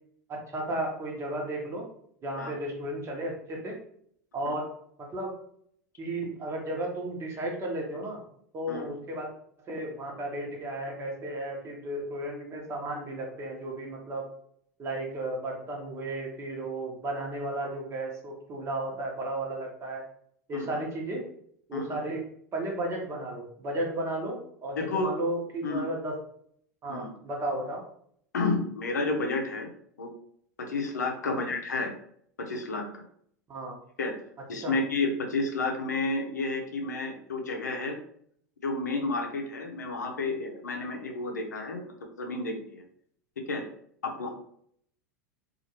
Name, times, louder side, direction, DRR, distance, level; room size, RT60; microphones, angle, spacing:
voice 1, 0.3-1.9 2.2-3.8 4.3-4.7 5.0-5.3 6.0-8.2 8.5-9.3 9.7-14.3 14.8-20.1 20.5-21.2 21.7-22.2 22.5-26.2 26.8-27.8 31.2-31.5 33.5-33.7 34.6-34.8, right 1 dB, 30° right, 0 dB, 1.0 m, -34 dB
voice 2, 24.8-25.1 25.6-25.8 26.9-27.1 28.3-29.7 30.0-30.1 30.6-31.9 32.4-32.8 34.0-34.1 34.5-38.0 38.6-41.9 42.2-42.8 43.5-43.6 44.0-44.3, left 3 dB, 80° left, 3 dB, 0.6 m, -31 dB
2.7 x 2.4 x 2.8 m, 0.64 s
hypercardioid pair, 85°, 9 cm